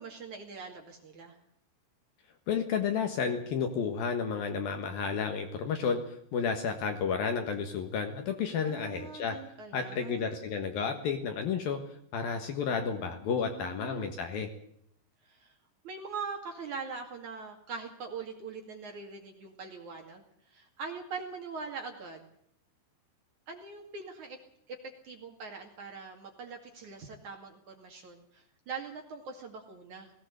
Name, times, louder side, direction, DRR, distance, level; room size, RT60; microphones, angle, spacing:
voice 1, 0.0-1.4 8.6-10.4 13.4-14.2 15.2-15.5 15.8-20.2 20.5-22.3 23.5-24.4 24.7-24.8 25.0-30.1, right 5 dB, 50° right, 3 dB, 3.1 m, -42 dB
voice 2, 2.5-9.4 9.7-11.8 12.1-14.5, left 6 dB, 65° left, 6 dB, 2.8 m, -31 dB
18.5 x 18.0 x 8.0 m, 0.69 s
omnidirectional pair, 5.4 m